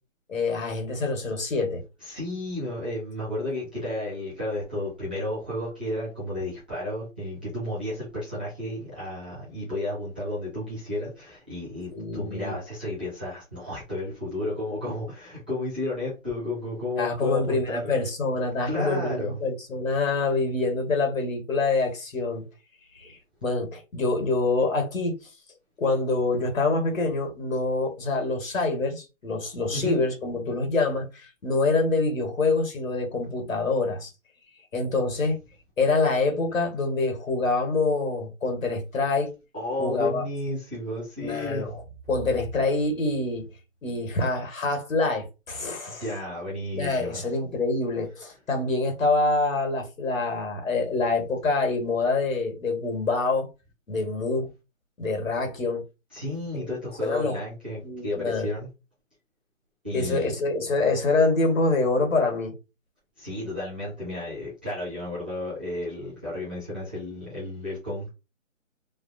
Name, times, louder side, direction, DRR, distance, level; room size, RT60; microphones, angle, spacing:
voice 1, 0.3-1.8 11.9-12.5 17.0-22.4 22.9-25.2 25.8-34.1 34.7-35.4 35.8-39.3 39.8-40.2 41.2-41.8 42.1-43.5 43.8-46.0 46.7-53.5 53.9-54.5 55.0-55.8 56.5-56.7 57.0-57.4 57.8-58.5 59.9-62.5, left 3 dB, 80° left, 1.5 m, -26 dB
voice 2, 2.0-17.9 18.6-19.4 29.7-30.0 39.5-41.6 45.9-47.2 56.1-58.7 59.8-60.3 63.2-68.1, left 1 dB, 5° right, 0.6 m, -32 dB
3.2 x 2.4 x 2.6 m
hypercardioid pair, 165°, 39 cm